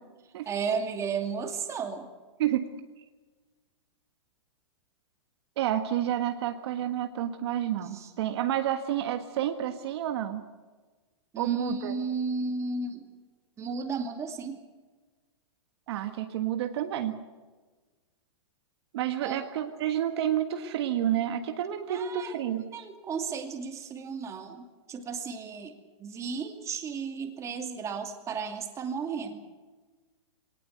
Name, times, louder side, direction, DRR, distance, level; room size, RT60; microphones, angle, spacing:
voice 1, 0.5-2.1 7.9-8.1 11.3-13.0 13.6-14.6 19.2-19.4 21.9-22.4 22.7-25.7 26.0-29.4, right 5 dB, 20° right, 4 dB, 2.5 m, -34 dB
voice 2, 2.4-2.7 5.6-10.4 11.4-12.0 15.9-17.2 18.9-22.8, right 11 dB, 55° right, 6 dB, 1.6 m, -30 dB
22.0 x 18.5 x 8.0 m, 1.3 s
hypercardioid pair, 145°, 16 cm